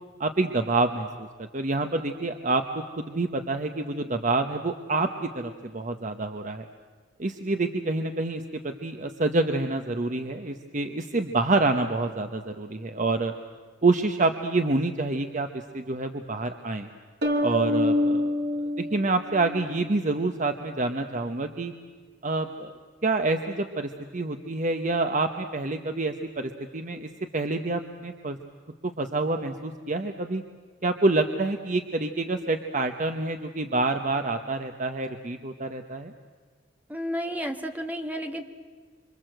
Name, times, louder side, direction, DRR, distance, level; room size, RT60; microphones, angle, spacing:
voice 1, 0.2-1.3 1.5-6.7 7.2-13.3 13.8-16.9 17.4-18.3 18.8-21.7 22.2-22.7 23.0-28.4 28.8-30.4 30.8-36.1, right 3 dB, 45° right, 6 dB, 1.1 m, -27 dB
sound 1, 17.2-19.9, left 1 dB, 60° right, 2.9 m, -26 dB
voice 2, 36.9-38.4, equal, 10° right, 5 dB, 1.8 m, -31 dB
26.5 x 26.0 x 7.9 m, 1.5 s
head